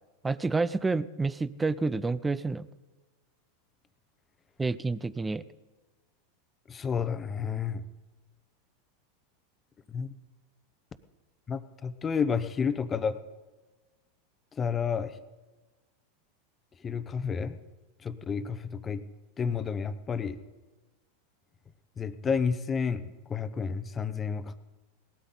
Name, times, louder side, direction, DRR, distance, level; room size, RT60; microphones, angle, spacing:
voice 1, 0.2-2.7 4.6-5.4, right 3 dB, 15° right, 17 dB, 0.4 m, -29 dB
voice 2, 6.7-7.8 9.9-10.1 11.5-13.2 14.5-15.2 16.8-17.6 18.0-19.0 19.4-20.4 22.0-24.6, left 6 dB, 25° left, 12 dB, 0.8 m, -31 dB
18.5 x 13.0 x 4.0 m, 1.2 s
hypercardioid pair, 110°, 0 cm